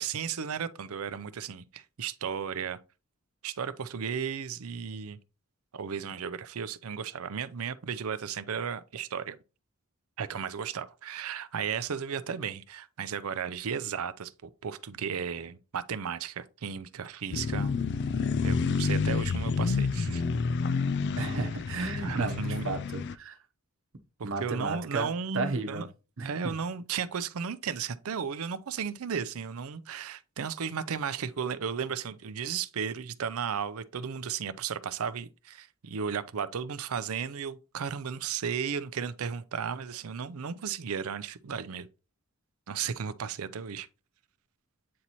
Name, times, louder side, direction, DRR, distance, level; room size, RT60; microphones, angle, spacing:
voice 1, 0.0-2.8 3.4-5.2 5.7-9.4 10.2-17.9 18.4-20.2 22.0-22.6 24.2-25.9 26.2-41.9 42.7-43.9, right 7 dB, 90° right, 0.5 m, -34 dB
sound 1, 17.3-23.1, left 5 dB, 55° left, 0.4 m, -29 dB
voice 2, 21.2-23.4 24.2-25.1 25.3-25.8 26.2-26.5, right 3 dB, 65° right, 1.0 m, -33 dB
8.6 x 4.1 x 3.0 m
head